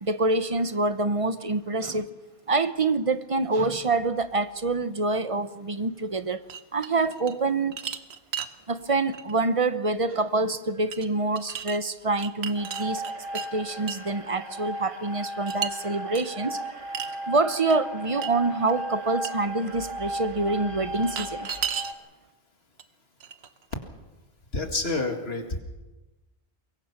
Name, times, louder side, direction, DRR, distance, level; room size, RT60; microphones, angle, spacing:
voice 1, 0.0-2.1 2.5-6.4 6.7-7.7 8.7-13.0 13.3-16.6 17.3-21.5, right 3 dB, 35° right, 13 dB, 0.9 m, -26 dB
sound 1, 6.5-7.4 7.7-8.6 9.1-9.3 10.9-11.1 11.4-11.8 12.2-13.5 13.9-14.1 15.5-15.7 16.2-16.3 16.9-17.2 17.7-17.8 18.2-18.3 18.7-18.8 19.2-19.3 21.0-21.9 22.8-22.9 23.2-23.7, right 7 dB, 80° right, 1.2 m, -34 dB
sound 2, 12.6-21.9, right 1 dB, 55° right, 1.9 m, -36 dB
voice 2, 24.5-25.6, left 2 dB, 80° left, 4 dB, 2.4 m, -28 dB
24.0 x 22.0 x 5.9 m, 1.1 s
omnidirectional pair, 1.0 m